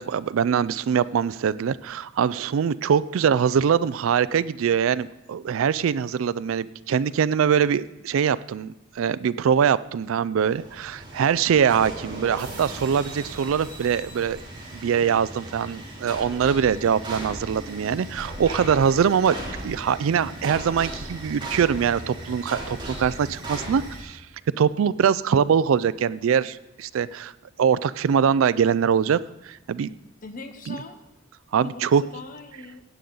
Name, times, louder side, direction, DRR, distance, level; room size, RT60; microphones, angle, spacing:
voice 1, 0.0-14.4 14.7-19.4 19.6-24.2 24.6-27.3 27.6-29.2 29.4-29.9 30.7-30.8 31.5-32.0, right 7 dB, 70° right, 18 dB, 0.3 m, -23 dB
sound 1, 10.4-24.0, right 1 dB, 25° right, 3.2 m, -37 dB
voice 2, 30.2-31.0 31.5-32.8, left 3 dB, 40° left, 8 dB, 0.9 m, -40 dB
16.0 x 8.7 x 3.9 m, 0.91 s
head